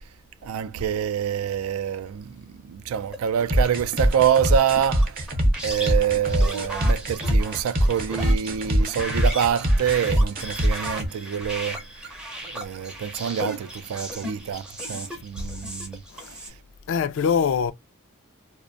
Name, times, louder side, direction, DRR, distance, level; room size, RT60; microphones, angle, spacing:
voice 1, 0.4-5.2 5.6-11.8 12.4-16.0 16.3-16.5, right 8 dB, 70° right, 0.3 m, -26 dB
sound 1, 3.0-16.5, equal, 5° right, 0.5 m, -36 dB
sound 2, 3.5-11.1, equal, 40° right, 0.7 m, -22 dB
voice 2, 16.9-17.7, left 6 dB, 60° left, 0.3 m, -23 dB
2.5 x 2.1 x 2.4 m
head